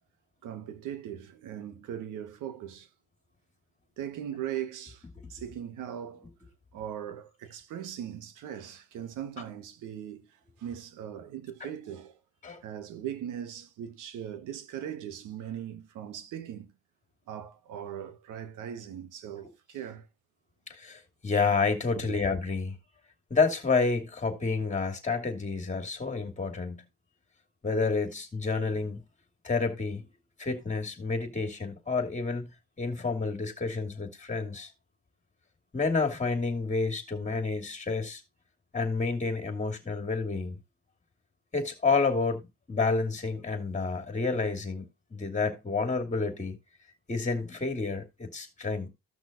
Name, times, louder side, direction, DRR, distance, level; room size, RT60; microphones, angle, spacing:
voice 1, 0.4-2.9 4.0-5.0 5.3-6.3 6.7-10.3 10.6-12.2 12.6-16.7 17.3-20.1 21.9-22.2, right 10 dB, 85° right, 1.3 m, -39 dB
voice 2, 20.7-22.8 23.3-26.8 27.6-29.0 29.4-30.0 30.4-32.5 32.8-34.7 35.7-38.2 38.7-40.6 41.5-42.4 42.7-46.6 47.1-48.9, left 4 dB, 25° left, 2.7 m, -29 dB
15.5 x 6.1 x 2.6 m
cardioid pair, 90°, 30 cm